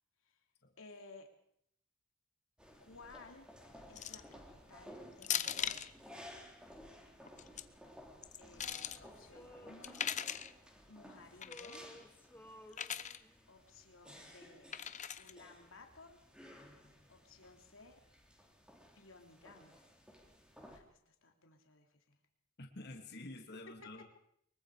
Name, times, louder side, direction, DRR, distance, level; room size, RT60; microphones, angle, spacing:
voice 1, 0.8-1.3 2.8-3.5 3.9-5.9 8.4-10.0 10.9-11.9 13.5-14.7 15.2-16.2 17.1-18.0 18.9-19.9 20.6-22.2, left 3 dB, 80° left, 3 dB, 3.2 m, -57 dB
sound 1, 2.6-20.8, equal, 5° right, 3.2 m, -57 dB
sound 2, 4.0-4.3 5.2-5.9 7.3-7.6 8.2-9.0 9.8-10.5 11.4-11.8 12.7-13.2 14.7-15.3, left 9 dB, 35° left, 0.8 m, -39 dB
Male singing, 8.6-11.0 11.3-13.5, left 1 dB, 10° left, 2.3 m, -57 dB
voice 2, 22.6-24.0, left 2 dB, 55° left, 2 dB, 2.6 m, -49 dB
24.0 x 22.5 x 5.0 m, 0.69 s
head